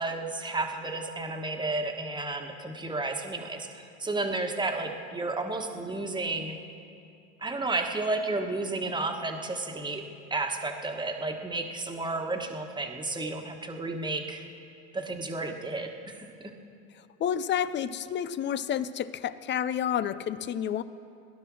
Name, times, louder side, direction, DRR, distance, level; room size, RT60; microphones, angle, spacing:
voice 1, 0.0-6.6 7.4-10.0 10.3-14.4 14.9-16.5, right 2 dB, 10° right, 4 dB, 1.4 m, -32 dB
voice 2, 17.2-20.8, left 9 dB, 30° left, 15 dB, 0.5 m, -30 dB
18.0 x 11.0 x 6.2 m, 2.5 s
supercardioid pair, 105°, 36 cm